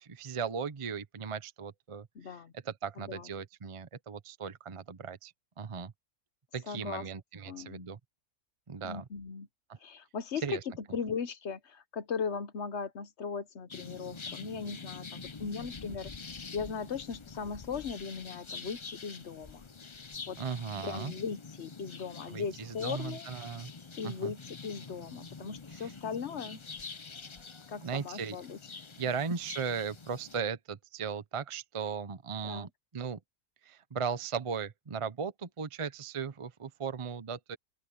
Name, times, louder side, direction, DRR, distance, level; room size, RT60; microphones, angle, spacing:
voice 1, 0.0-2.3 2.6-5.9 6.5-8.0 8.7-9.0 9.7-9.8 10.4-10.6 20.4-21.1 22.3-23.7 24.0-24.3 25.7-25.9 27.8-28.4 29.0-33.2 33.6-37.6, right 6 dB, 30° right, 0.6 m, -37 dB
voice 2, 2.1-2.5 3.0-3.3 6.7-7.1 7.5-7.8 8.8-9.5 9.8-10.6 10.9-16.1 16.5-19.6 20.3-20.4 20.8-23.3 24.0-26.6 27.7-28.6 32.4-32.7, left 6 dB, 55° left, 1.1 m, -38 dB
sound 1, 13.7-30.4, left 4 dB, 35° left, 0.5 m, -46 dB
open air
omnidirectional pair, 1.6 m